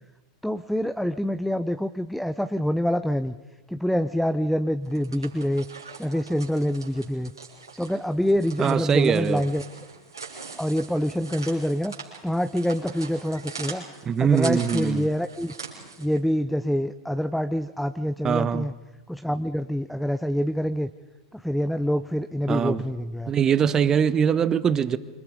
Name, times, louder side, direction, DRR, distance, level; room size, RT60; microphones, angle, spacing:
voice 1, 0.4-3.4 3.7-5.7 6.0-7.3 7.8-9.6 10.6-11.9 12.2-13.8 14.2-15.5 16.0-18.7 19.1-20.9 21.3-23.3, equal, ahead, 0.7 m, -26 dB
sound 1, 4.8-16.2, right 4 dB, 90° right, 5.9 m, -41 dB
voice 2, 8.6-9.4 14.1-15.1 18.2-18.6 22.5-22.8 23.3-25.0, right 8 dB, 25° right, 1.2 m, -22 dB
28.0 x 26.0 x 5.3 m
figure-of-eight pair, 90°, 2 cm